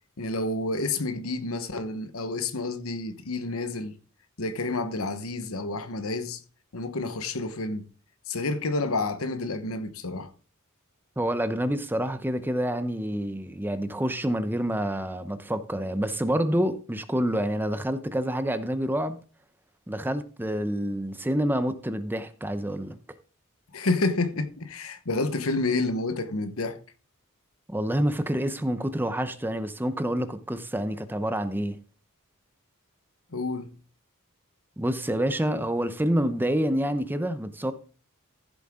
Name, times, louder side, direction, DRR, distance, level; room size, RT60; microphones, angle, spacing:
voice 1, 0.2-4.0 4.4-6.4 6.7-7.9 8.3-10.3 23.7-26.8 33.3-33.7, left 2 dB, 70° left, 1.2 m, -29 dB
voice 2, 11.2-19.2 19.9-23.0 27.7-31.8 34.8-37.7, equal, 10° right, 0.7 m, -27 dB
15.0 x 7.5 x 3.7 m
head